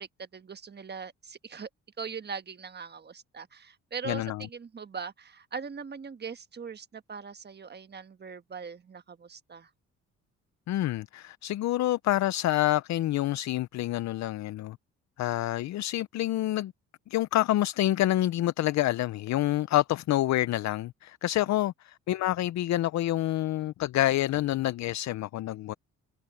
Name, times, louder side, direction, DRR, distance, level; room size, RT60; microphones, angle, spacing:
voice 1, 0.0-1.7 2.0-9.7, right 5 dB, 35° right, 1.3 m, -41 dB
voice 2, 4.1-4.4 10.7-14.8 15.2-16.7 17.1-25.7, left 14 dB, 65° left, 0.6 m, -27 dB
cardioid pair, 90°, 30 cm